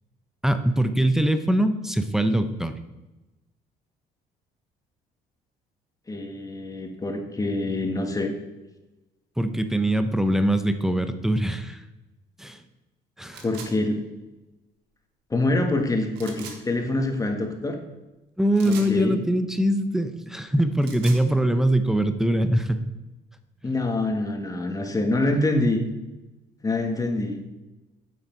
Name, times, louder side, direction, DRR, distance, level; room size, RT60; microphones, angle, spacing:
voice 1, 0.4-2.8 9.4-11.8 12.4-12.6 13.2-13.4 18.4-22.8, right 1 dB, ahead, 9 dB, 0.7 m, -22 dB
voice 2, 6.1-8.3 13.4-14.0 15.3-17.8 18.7-19.2 23.6-25.8 26.6-27.4, left 2 dB, 20° left, 4 dB, 1.6 m, -25 dB
sound 1, 13.3-13.7 16.1-16.6 18.5-18.9 20.6-21.2, right 6 dB, 85° right, 1.6 m, -40 dB
9.3 x 7.1 x 4.5 m, 1.0 s
cardioid pair, 110°, 17 cm